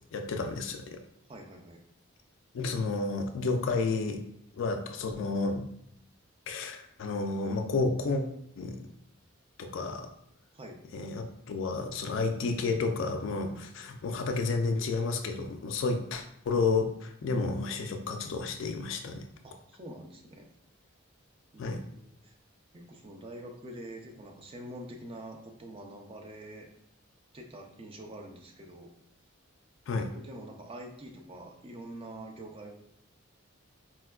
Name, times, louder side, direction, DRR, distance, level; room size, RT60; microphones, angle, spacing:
voice 1, 0.1-1.0 2.5-4.2 4.6-5.7 6.5-8.2 8.6-8.8 9.6-10.1 10.9-19.3 21.6-21.8 29.9-30.1, left 3 dB, 60° left, 5 dB, 0.3 m, -31 dB
voice 2, 1.3-1.8 10.5-10.8 19.4-20.5 21.5-22.3 22.7-26.7 27.3-28.9 30.1-32.8, right 1 dB, 25° right, 2 dB, 0.4 m, -45 dB
4.1 x 2.2 x 2.3 m, 0.73 s
head